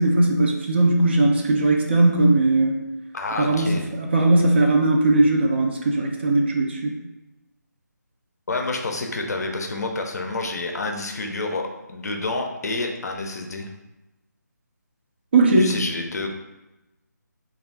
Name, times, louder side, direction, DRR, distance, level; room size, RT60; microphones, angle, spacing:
voice 1, 0.0-2.8 3.4-6.9 15.3-15.8, right 2 dB, 35° right, 1 dB, 0.4 m, -19 dB
voice 2, 3.1-3.8 8.5-13.7 15.6-16.3, left 2 dB, 60° left, 3 dB, 0.5 m, -28 dB
2.4 x 2.3 x 3.3 m, 1.0 s
figure-of-eight pair, 155°, 10 cm